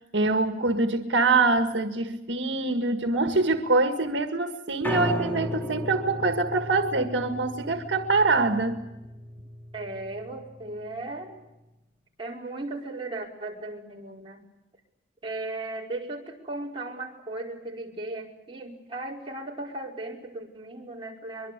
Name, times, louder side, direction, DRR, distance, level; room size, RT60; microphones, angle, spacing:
voice 1, 0.0-8.8, right 3 dB, 80° right, 7 dB, 1.8 m, -24 dB
Piano, 4.8-11.0, left 1 dB, 10° left, 2.6 m, -35 dB
voice 2, 9.7-11.4 12.2-14.4 15.2-21.5, right 2 dB, 30° right, -2 dB, 5.1 m, -36 dB
24.0 x 23.0 x 8.3 m, 0.97 s
head